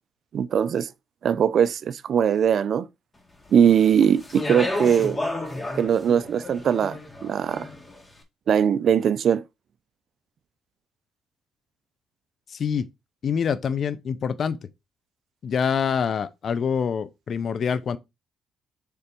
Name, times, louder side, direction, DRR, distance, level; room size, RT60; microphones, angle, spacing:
voice 1, 0.3-0.9 1.2-2.9 3.5-5.2 5.7-7.7 8.5-9.4, right 8 dB, 60° right, 0.5 m, -21 dB
Speech, 3.6-8.0, left 1 dB, 20° left, 1.9 m, -32 dB
voice 2, 12.5-12.9 13.2-14.6 15.4-18.0, left 7 dB, 55° left, 0.6 m, -25 dB
6.9 x 3.4 x 4.4 m
cardioid pair, 90°, 0 cm